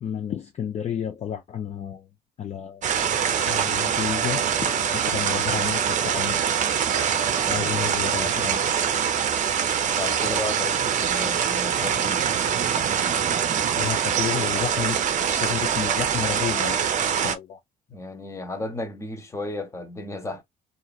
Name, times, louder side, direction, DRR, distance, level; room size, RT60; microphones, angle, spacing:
voice 1, 0.0-2.1 2.4-3.1 3.4-6.4 7.5-8.6 13.7-15.0 15.4-17.6, left 9 dB, 40° left, 0.5 m, -31 dB
sound 1, 2.8-17.4, right 8 dB, 45° right, 0.6 m, -24 dB
voice 2, 10.0-12.4 17.9-20.4, left 2 dB, 15° left, 0.8 m, -34 dB
2.8 x 2.4 x 2.3 m
cardioid pair, 110°, 17 cm